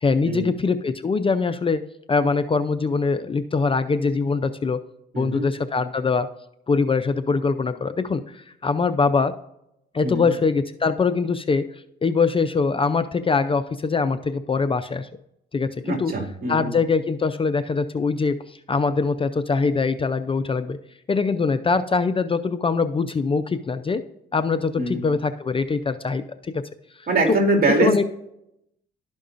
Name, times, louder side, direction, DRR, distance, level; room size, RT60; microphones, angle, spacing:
voice 1, 0.0-4.8 5.2-6.3 6.7-9.3 9.9-11.6 12.0-15.1 15.5-16.1 16.5-20.8 21.1-24.0 24.3-26.6 27.3-27.4 27.8-28.0, left 4 dB, 25° left, 11 dB, 0.4 m, -23 dB
voice 2, 15.8-16.7 24.7-25.0 27.1-28.0, right 2 dB, 50° right, 2 dB, 2.3 m, -23 dB
12.5 x 5.3 x 2.5 m, 0.81 s
cardioid pair, 90°, 20 cm